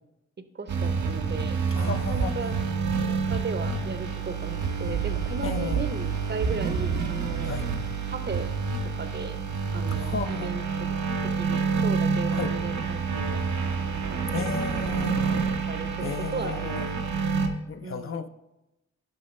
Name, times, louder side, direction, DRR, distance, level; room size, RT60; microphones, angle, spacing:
voice 1, 0.5-2.5 3.0-7.5 8.1-8.5 8.9-9.4 9.7-10.9 11.4-13.7 14.1-14.6 15.4-16.9 17.8-18.3, right 4 dB, 35° right, 0.7 m, -36 dB
sound 1, 0.7-17.5, right 5 dB, 80° right, 0.8 m, -28 dB
voice 2, 1.7-2.5 5.4-5.9 7.4-7.7 10.0-10.5 12.3-12.5 14.3-15.2 16.0-16.8 17.7-18.3, left 6 dB, 45° left, 0.5 m, -34 dB
11.5 x 5.4 x 3.1 m
cardioid pair, 65°, 29 cm